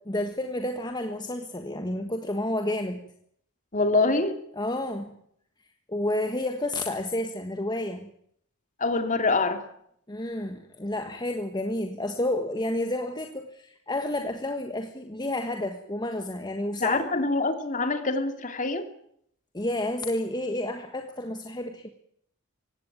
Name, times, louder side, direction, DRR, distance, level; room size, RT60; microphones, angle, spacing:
voice 1, 0.1-3.0 4.6-5.2 5.9-8.1 10.1-17.0 19.5-21.9, left 1 dB, 20° left, 6 dB, 1.4 m, -30 dB
voice 2, 3.7-4.4 8.8-9.6 16.8-18.9, left 3 dB, 35° left, 8 dB, 2.6 m, -25 dB
18.5 x 16.5 x 9.7 m, 0.69 s
head